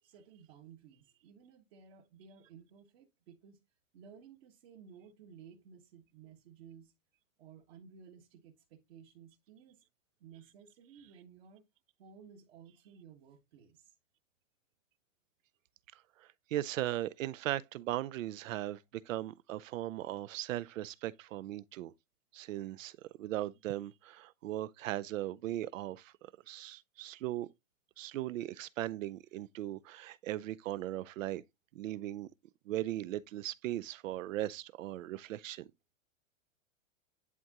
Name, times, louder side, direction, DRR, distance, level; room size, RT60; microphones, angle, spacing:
voice 1, 0.0-3.6 3.9-6.9 7.4-9.8 10.2-11.6 12.0-14.0, right 7 dB, 50° right, 1.5 m, -56 dB
voice 2, 16.2-21.9 22.3-26.1 26.5-27.5 28.0-31.4 31.7-32.3 32.7-35.7, right 14 dB, 75° right, 0.6 m, -38 dB
11.0 x 3.7 x 2.9 m
hypercardioid pair, 150°, 40 cm